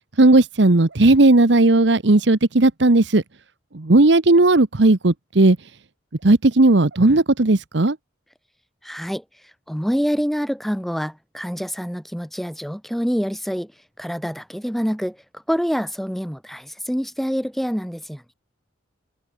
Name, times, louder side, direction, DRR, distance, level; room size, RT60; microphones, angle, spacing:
voice 1, 0.2-3.2 3.7-5.6 6.2-8.0, right 2 dB, 65° right, 1.1 m, -15 dB
voice 2, 8.8-9.2 9.7-13.7 14.0-15.2 15.5-18.3, equal, ahead, 2.9 m, -26 dB
head